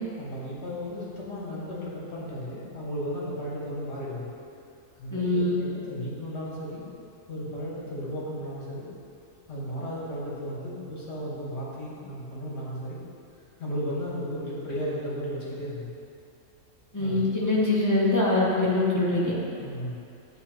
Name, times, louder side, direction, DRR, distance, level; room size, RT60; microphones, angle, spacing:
voice 1, 0.2-4.3 5.0-6.8 7.3-8.9 9.5-13.0 13.6-15.9 17.0-17.2 19.6-20.0, equal, 50° left, -7 dB, 1.5 m, -34 dB
voice 2, 5.1-5.6 16.9-19.3, left 2 dB, 15° left, -7 dB, 0.8 m, -23 dB
9.6 x 3.9 x 3.0 m, 2.5 s
omnidirectional pair, 1.5 m